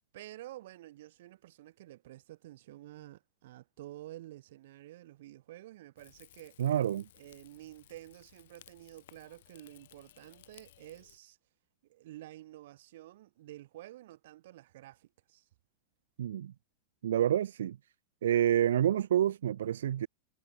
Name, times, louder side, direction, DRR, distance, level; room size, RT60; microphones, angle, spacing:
voice 1, 0.1-6.6 7.1-11.4 11.9-15.4, right 15 dB, 70° right, 4.9 m, -50 dB
Rain / Fire, 6.0-11.2, left 14 dB, 75° left, 7.0 m, -60 dB
voice 2, 6.6-7.1 16.2-16.5 17.0-17.8 18.2-20.1, right 10 dB, 85° right, 0.6 m, -28 dB
supercardioid pair, 130°, 0 cm